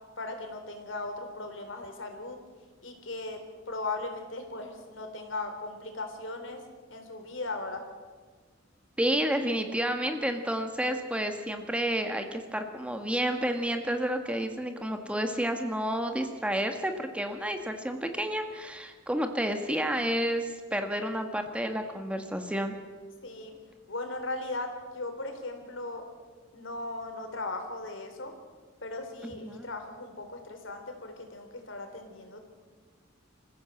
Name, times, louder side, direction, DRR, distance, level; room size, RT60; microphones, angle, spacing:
voice 1, 0.2-2.4 2.8-6.6 6.9-7.8 23.2-23.5 23.9-26.0 26.5-28.3 28.8-32.4, left 2 dB, 70° left, 5 dB, 3.6 m, -38 dB
voice 2, 9.0-22.7 29.2-29.7, equal, 5° right, 6 dB, 1.3 m, -30 dB
26.0 x 15.0 x 7.7 m, 1.5 s
head